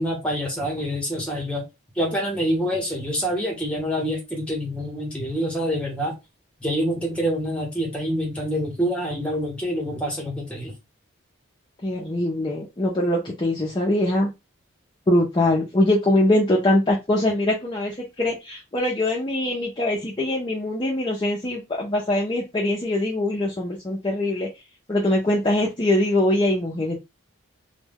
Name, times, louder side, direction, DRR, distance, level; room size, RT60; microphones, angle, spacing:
voice 1, 0.0-1.6 2.0-6.1 6.6-10.7, equal, 5° left, -1 dB, 0.8 m, -26 dB
voice 2, 11.8-14.3 15.1-24.5 24.9-27.0, left 1 dB, 20° left, -3 dB, 0.4 m, -22 dB
2.1 x 2.1 x 3.4 m, 0.24 s
head